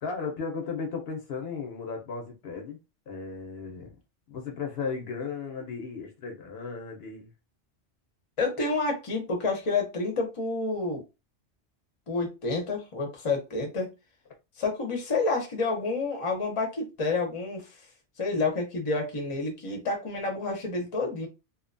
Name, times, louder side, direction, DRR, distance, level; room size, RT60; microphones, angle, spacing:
voice 1, 0.0-2.8 3.1-3.9 4.3-7.3, left 5 dB, 65° left, 0.8 m, -35 dB
voice 2, 8.4-11.0 12.1-13.9 14.6-17.7 18.2-21.3, left 3 dB, 35° left, 0.7 m, -29 dB
2.6 x 2.2 x 2.5 m
omnidirectional pair, 1.2 m